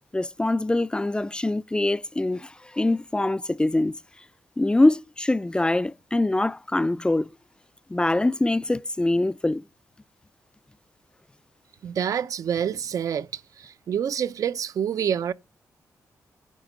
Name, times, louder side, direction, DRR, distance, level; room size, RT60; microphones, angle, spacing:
voice 1, 0.1-4.0 4.6-7.3 7.9-9.6, left 2 dB, 15° left, 0.4 m, -24 dB
voice 2, 11.8-15.3, right 8 dB, 70° right, 0.5 m, -27 dB
10.0 x 3.6 x 6.1 m
cardioid pair, 70°, 6 cm